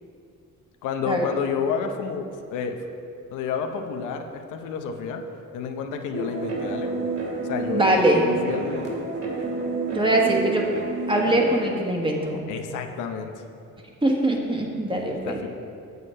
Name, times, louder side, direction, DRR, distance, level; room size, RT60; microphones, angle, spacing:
voice 1, 0.8-2.8 3.3-5.2 5.5-6.9 7.5-8.9 12.5-13.3 15.2-15.5, left 6 dB, 85° left, 5 dB, 0.7 m, -30 dB
sound 1, 6.1-11.6, right 3 dB, 50° right, 2.3 m, -30 dB
voice 2, 7.7-8.2 9.9-10.6 11.1-12.4 14.0-15.4, right 1 dB, 15° right, 0 dB, 1.4 m, -22 dB
8.0 x 6.6 x 5.4 m, 2.7 s
cardioid pair, 90°, 30 cm